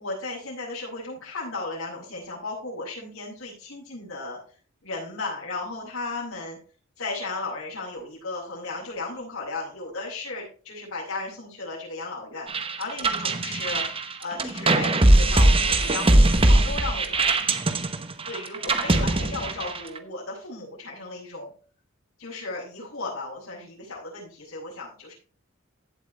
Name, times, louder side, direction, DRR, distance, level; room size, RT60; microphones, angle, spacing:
voice 1, 0.0-4.4 4.8-6.6 7.0-13.8 14.2-17.3 18.2-21.5 22.2-25.1, left 3 dB, 80° left, -10 dB, 6.8 m, -35 dB
sound 1, 12.5-20.0, right 2 dB, 25° right, 1.0 m, -21 dB
16.0 x 7.7 x 3.3 m, 0.39 s
head